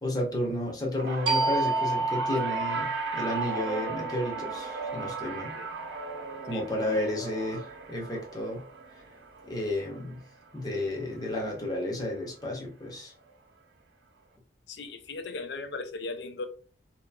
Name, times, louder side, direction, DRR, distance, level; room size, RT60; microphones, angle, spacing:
voice 1, 0.0-5.5 6.5-8.6 9.5-10.2 10.5-13.1, left 1 dB, 20° left, 0.7 m, -32 dB
sound 1, 1.0-11.4 11.8-12.2 13.3-13.4, right 4 dB, 85° right, 0.5 m, -38 dB
sound 2, 1.3-6.6, right 3 dB, 30° right, 0.5 m, -32 dB
voice 2, 14.7-16.5, left 3 dB, 75° left, 0.4 m, -37 dB
2.9 x 2.4 x 2.2 m
head